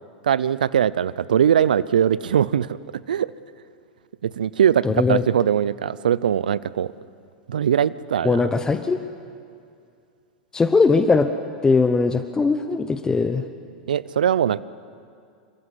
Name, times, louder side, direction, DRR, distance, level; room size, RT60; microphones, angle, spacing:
voice 1, 0.2-2.8 3.1-3.3 4.2-6.9 7.5-8.4 13.9-14.6, right 9 dB, 75° right, 19 dB, 0.6 m, -21 dB
voice 2, 4.8-5.2 8.2-9.0 10.5-11.3 11.6-13.4, left 4 dB, 15° left, 9 dB, 1.0 m, -20 dB
28.0 x 15.5 x 8.2 m, 2.4 s
hypercardioid pair, 95°, 5 cm